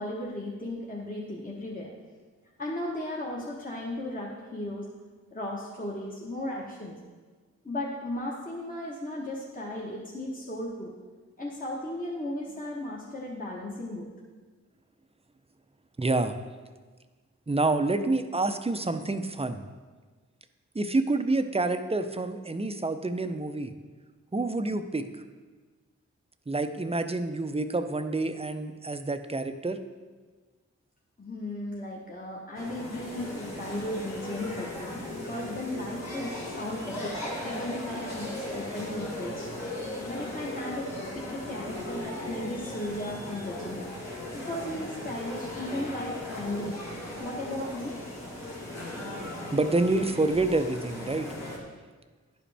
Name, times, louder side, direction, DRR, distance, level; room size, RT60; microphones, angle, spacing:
voice 1, 0.0-1.9 2.6-4.9 5.3-7.0 7.6-10.9 11.4-14.1 31.2-37.1 37.4-39.7 40.1-40.9 41.1-43.9 44.3-46.8 47.2-47.9, left 1 dB, 30° left, -4 dB, 1.2 m, -36 dB
voice 2, 16.0-16.4 17.5-19.6 20.7-23.7 24.3-25.0 26.5-29.8 49.5-51.3, right 2 dB, 20° right, 9 dB, 0.5 m, -28 dB
sound 1, 32.5-51.6, left 1 dB, 60° left, 1.8 m, -37 dB
11.0 x 5.0 x 3.4 m, 1.4 s
wide cardioid pair, 45°, 30 cm